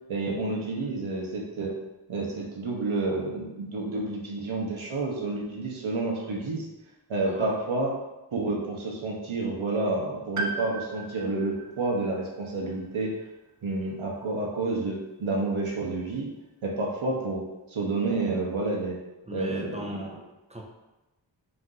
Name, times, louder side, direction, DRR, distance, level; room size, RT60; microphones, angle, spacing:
voice 1, 0.1-1.7 2.1-6.7 7.1-7.9 8.3-13.1 13.6-16.3 16.6-17.4 17.7-19.0 19.3-20.0, right 2 dB, 80° right, -2 dB, 1.1 m, -29 dB
voice 2, 7.2-7.6 19.3-20.6, right 1 dB, 15° right, 0 dB, 0.8 m, -37 dB
Piano, 10.4-14.2 14.5-14.6 15.7-15.8, right 2 dB, 40° right, 0.5 m, -38 dB
4.5 x 2.7 x 3.8 m, 1.0 s
wide cardioid pair, 70°, 48 cm